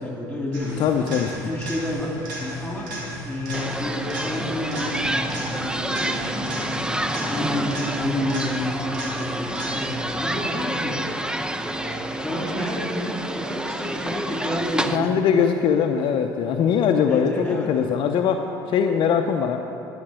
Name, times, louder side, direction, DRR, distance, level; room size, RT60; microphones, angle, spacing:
voice 1, 0.0-1.1 1.4-2.9 3.2-6.3 6.8-8.9 9.1-11.0 11.6-15.1 17.1-17.9, left 1 dB, 10° left, -2 dB, 3.2 m, -30 dB
sound 1, 0.5-10.1 18.1-18.2, equal, 85° right, 2.9 m, -34 dB
voice 2, 0.8-1.3 14.9-19.6, left 7 dB, 60° left, 4 dB, 0.7 m, -21 dB
sound 2, 3.5-15.0, right 1 dB, 10° right, 0.6 m, -28 dB
12.5 x 6.0 x 7.6 m, 2.8 s
hypercardioid pair, 70°, 10 cm